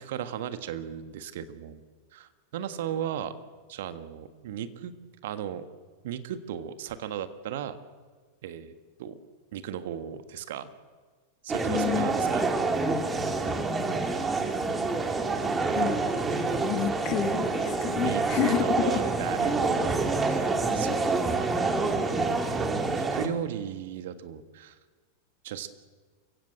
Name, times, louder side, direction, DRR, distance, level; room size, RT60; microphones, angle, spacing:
voice 1, 0.0-1.8 2.1-3.3 3.7-4.9 5.2-5.6 6.0-7.8 8.4-8.7 9.0-9.2 9.5-10.7 11.4-12.5 18.0-21.6 22.4-24.8 25.4-25.7, right 9 dB, 55° right, 10 dB, 1.6 m, -36 dB
sound 1, 11.5-23.3, right 3 dB, 15° right, 2.4 m, -27 dB
voice 2, 11.7-12.1 15.7-16.1 16.6-19.0, left 13 dB, 40° left, 10 dB, 1.7 m, -30 dB
28.5 x 16.5 x 7.9 m, 1.5 s
figure-of-eight pair, 90°, 0 cm